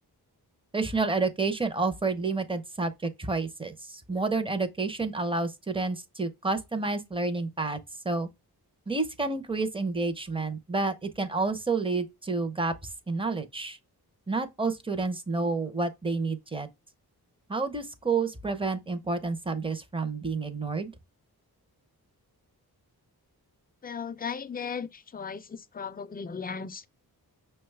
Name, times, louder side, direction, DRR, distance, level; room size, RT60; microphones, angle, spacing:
voice 1, 0.7-7.8 8.0-8.3 8.9-12.7 13.1-13.8 14.3-16.7 17.5-20.9, right 3 dB, 15° right, 0.6 m, -29 dB
voice 2, 23.8-26.9, left 6 dB, 25° left, 0.4 m, -36 dB
5.9 x 2.3 x 3.2 m
wide cardioid pair, 100°, 39 cm